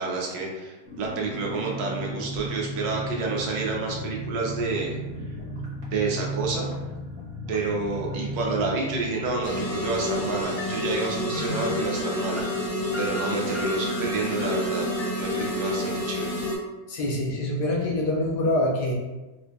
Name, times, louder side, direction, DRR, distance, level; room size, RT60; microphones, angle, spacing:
voice 1, 0.0-4.9 5.9-6.7 7.5-12.4 13.0-14.9 15.1-16.4, right 3 dB, 90° right, -1 dB, 1.4 m, -29 dB
sound 1, 0.8-13.2 13.5-13.6 13.8-14.1, equal, 25° right, 0.8 m, -36 dB
sound 2, 9.4-16.6, left 1 dB, 55° left, 0.9 m, -28 dB
voice 2, 16.9-18.9, left 1 dB, 80° left, -2 dB, 1.5 m, -25 dB
4.6 x 2.2 x 2.7 m, 1.1 s
omnidirectional pair, 1.9 m